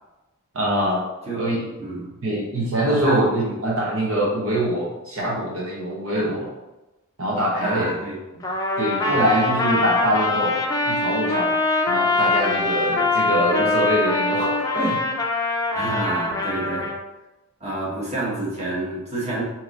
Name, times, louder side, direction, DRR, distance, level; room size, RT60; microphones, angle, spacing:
voice 1, 0.5-1.0 1.4-1.7 2.2-6.5 7.2-7.9 8.8-10.6 10.8-11.5 11.9-15.0, equal, 70° right, -3 dB, 1.0 m, -23 dB
voice 2, 1.8-2.1 2.8-3.6 6.1-6.3 7.6-8.5 9.0-9.3 15.7-16.9 17.6-19.4, right 1 dB, 30° right, -6 dB, 1.3 m, -29 dB
Trumpet, 8.4-17.0, left 2 dB, 15° left, 0.4 m, -23 dB
4.7 x 2.9 x 3.8 m, 1.0 s
head